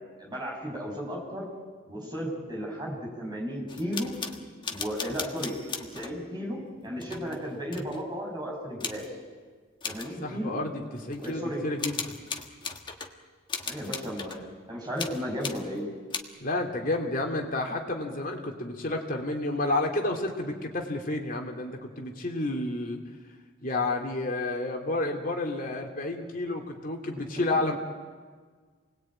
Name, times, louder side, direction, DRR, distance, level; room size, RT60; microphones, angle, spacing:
voice 1, 0.0-1.5 1.9-4.1 4.7-5.5 5.9-9.1 9.8-10.6 11.1-11.6 13.7-15.9, equal, 20° right, -2 dB, 7.0 m, -34 dB
sound 1, 3.7-6.2 7.0-8.0 8.8-9.1 9.8-10.1 11.1-11.3 11.8-13.1 13.5-14.5 15.0-15.7 16.1-16.2, left 5 dB, 25° left, 1.5 m, -37 dB
voice 2, 10.2-12.1 16.4-23.0 23.6-27.8, left 2 dB, 40° left, 2 dB, 3.1 m, -30 dB
29.0 x 20.0 x 9.1 m, 1.5 s
head